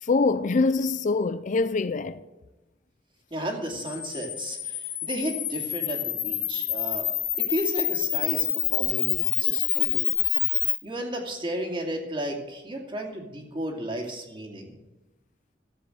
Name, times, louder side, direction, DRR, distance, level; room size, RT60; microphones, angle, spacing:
voice 1, 0.0-2.2, left 3 dB, 45° left, 0.4 m, -24 dB
voice 2, 3.3-7.1 7.4-10.1 10.8-14.7, right 1 dB, 30° right, 2.5 m, -33 dB
Camera, 3.7-10.7, left 13 dB, 75° left, 2.2 m, -27 dB
13.5 x 7.7 x 7.7 m
head